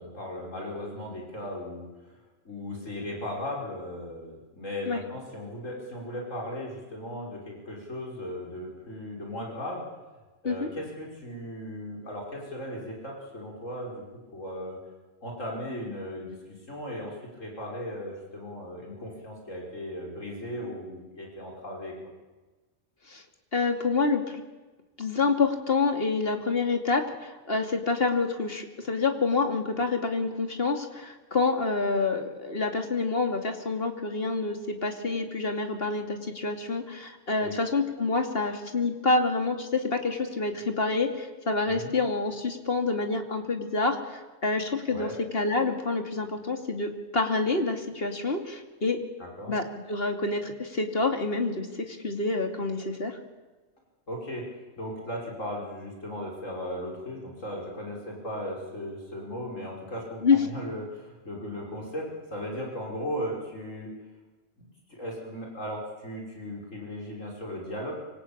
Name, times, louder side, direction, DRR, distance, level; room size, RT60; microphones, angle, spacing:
voice 1, 0.0-1.9 2.4-9.9 10.4-14.0 14.3-14.8 15.2-22.0 37.4-37.6 41.7-41.9 44.9-45.1 49.2-49.5 54.1-54.5 54.8-63.9 64.9-67.9, equal, 80° left, -1 dB, 6.0 m, -37 dB
voice 2, 23.5-24.4 25.0-49.0 49.5-53.2 60.2-60.4, left 3 dB, 50° left, 5 dB, 2.9 m, -27 dB
25.5 x 25.0 x 8.7 m, 1.2 s
omnidirectional pair, 1.3 m